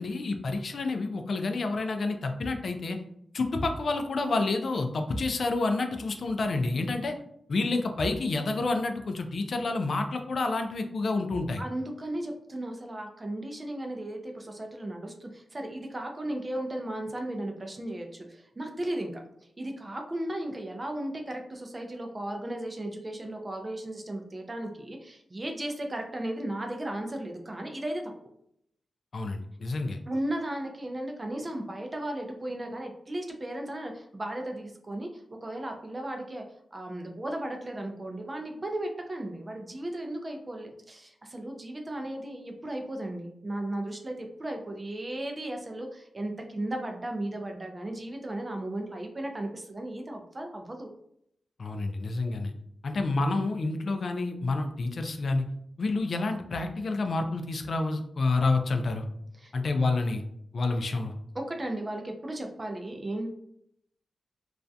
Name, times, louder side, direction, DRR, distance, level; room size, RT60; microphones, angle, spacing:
voice 1, 0.0-3.0 3.3-7.1 7.5-11.6 29.1-30.0 51.6-52.5 52.8-55.5 55.8-59.0 59.5-60.2 60.5-61.1, left 3 dB, 55° left, 5 dB, 0.3 m, -29 dB
voice 2, 11.6-19.2 19.6-28.1 30.1-36.4 36.7-50.9 59.4-59.5 61.3-63.3, right 1 dB, 25° right, 3 dB, 0.4 m, -35 dB
2.3 x 2.1 x 2.6 m, 0.72 s
wide cardioid pair, 115°, 0 cm